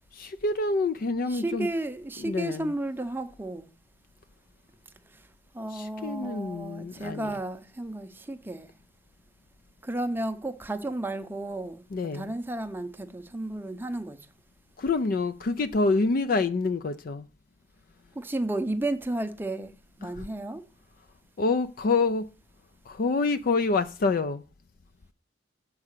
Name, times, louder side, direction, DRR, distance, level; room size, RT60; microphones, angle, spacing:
voice 1, 0.1-1.7 2.2-2.7 5.7-7.3 11.9-12.3 14.8-17.3 20.0-20.2 21.4-22.3 22.9-24.4, left 3 dB, 50° left, 0.4 m, -27 dB
voice 2, 1.3-3.7 5.1-5.2 5.5-8.7 9.8-14.2 18.2-19.7 20.0-20.6, right 2 dB, 10° right, 0.6 m, -33 dB
7.4 x 4.7 x 6.5 m
head